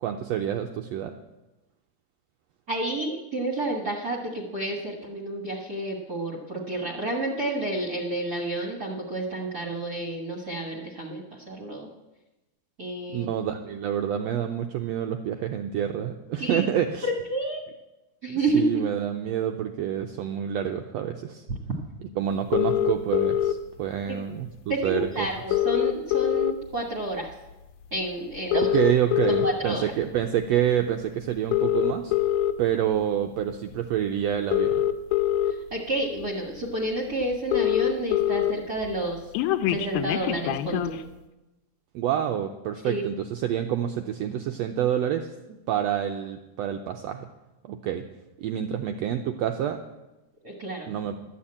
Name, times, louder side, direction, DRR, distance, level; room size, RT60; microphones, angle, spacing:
voice 1, 0.0-1.1 13.1-17.1 18.5-21.4 22.2-24.5 24.8-25.3 28.5-32.1 32.6-34.7 41.9-45.3 45.7-47.3 47.6-48.0 48.4-49.8 50.9-51.1, right 10 dB, 85° right, 5 dB, 1.5 m, -27 dB
voice 2, 2.7-11.9 12.8-13.3 16.4-16.6 17.0-17.6 18.2-18.8 21.5-21.6 24.1-24.2 24.7-27.3 27.9-28.7 29.3-29.9 35.4-39.3 39.7-41.0 42.8-43.0 50.4-50.9, right 2 dB, 40° right, 2 dB, 1.5 m, -30 dB
sound 1, 22.5-23.5 24.7-24.8 25.1-25.2 25.4-26.8 27.3-27.5 28.4-29.5 30.2-30.5 31.4-32.5 33.7-33.8 34.3-35.5 36.2-36.3 36.6-36.7 36.9-37.0 37.2-38.5 38.8-41.0, left 12 dB, 85° left, 2.2 m, -24 dB
13.0 x 7.1 x 8.6 m, 1.0 s
omnidirectional pair, 3.6 m